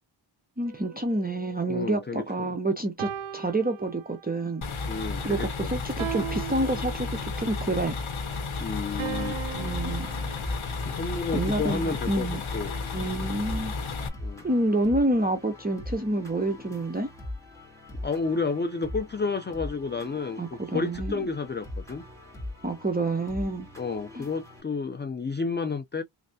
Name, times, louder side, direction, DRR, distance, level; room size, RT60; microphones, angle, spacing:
voice 1, 0.6-4.6 5.2-8.0 9.6-10.1 11.3-12.4 12.9-13.7 14.4-17.1 20.4-21.3 22.6-23.7 24.2-24.3, right 2 dB, 20° right, 0.7 m, -28 dB
sound 1, 0.7-2.4 3.0-4.4 6.0-7.4 9.0-10.5, right 11 dB, 70° right, 0.6 m, -38 dB
voice 2, 1.7-2.5 4.9-5.8 8.6-9.4 10.8-12.3 12.5-12.7 14.2-14.4 18.0-20.4 20.7-22.0 23.8-26.0, left 4 dB, 25° left, 0.4 m, -31 dB
sound 2, 4.6-14.1, left 4 dB, 70° left, 0.9 m, -33 dB
sound 3, 9.7-24.6, left 1 dB, 5° left, 2.2 m, -41 dB
3.5 x 3.2 x 2.6 m
wide cardioid pair, 60°, 50 cm